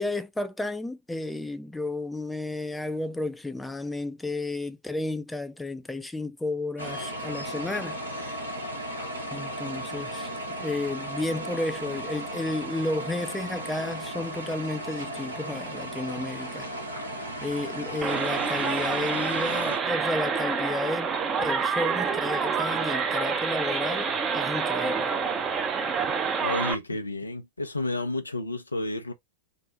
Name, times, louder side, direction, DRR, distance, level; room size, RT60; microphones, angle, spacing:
voice 1, 0.0-8.4 9.3-16.7 17.4-21.1 21.4-25.1, left 2 dB, 5° left, 0.3 m, -32 dB
sound 1, 6.8-19.8, right 1 dB, 80° right, 1.0 m, -35 dB
sound 2, 18.0-26.7, right 5 dB, 25° right, 0.6 m, -27 dB
voice 2, 26.4-29.1, left 2 dB, 80° left, 0.6 m, -31 dB
3.7 x 2.0 x 2.7 m
figure-of-eight pair, 90°, 0 cm